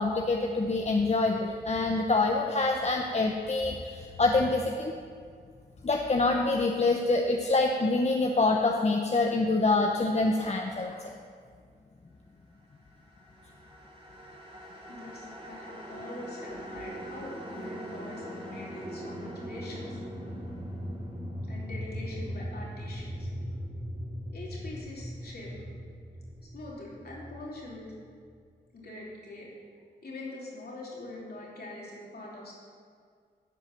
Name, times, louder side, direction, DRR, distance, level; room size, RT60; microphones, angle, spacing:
voice 1, 0.0-4.9 5.8-11.1, left 3 dB, 40° left, 2 dB, 0.8 m, -26 dB
sound 1, 13.1-28.3, equal, 30° right, 2.2 m, -40 dB
voice 2, 14.9-20.0 21.5-23.3 24.3-25.5 26.4-27.8 28.7-29.5 30.0-32.5, left 2 dB, 60° left, -4 dB, 3.0 m, -43 dB
10.5 x 4.7 x 7.5 m, 2.1 s
cardioid pair, 45°, 18 cm